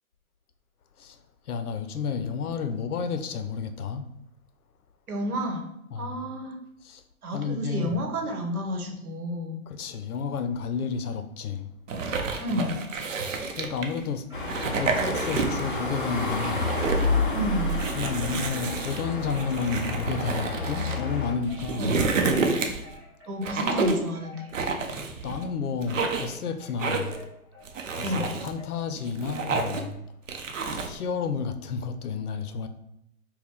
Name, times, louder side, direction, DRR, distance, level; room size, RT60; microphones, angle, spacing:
voice 1, 1.5-4.1 5.9-6.2 6.8-7.0 7.3-8.0 9.7-11.7 13.5-14.3 14.8-16.7 18.0-21.9 25.2-27.2 28.0-30.0 30.8-32.7, left 6 dB, 90° left, 0.6 m, -31 dB
voice 2, 5.1-5.7 5.9-6.6 7.2-9.6 12.4-12.8 17.3-17.8 21.8-22.1 23.3-24.5 28.0-28.3, left 1 dB, 80° right, 1.1 m, -30 dB
sound 1, 11.9-14.0 14.4-15.8 16.1-17.1 17.7-21.0 21.4-22.9 23.4-24.1 24.5-25.4 25.8-26.4 26.8-27.2 27.7-28.5 29.0-29.9 30.3-31.0, right 4 dB, 60° right, 0.6 m, -29 dB
Wind chime, 13.3-13.9 14.3-28.8, left 4 dB, 20° right, 0.7 m, -50 dB
sound 2, 14.3-21.3, left 2 dB, 40° left, 0.4 m, -29 dB
4.6 x 2.2 x 3.5 m
hypercardioid pair, 170°, 44 cm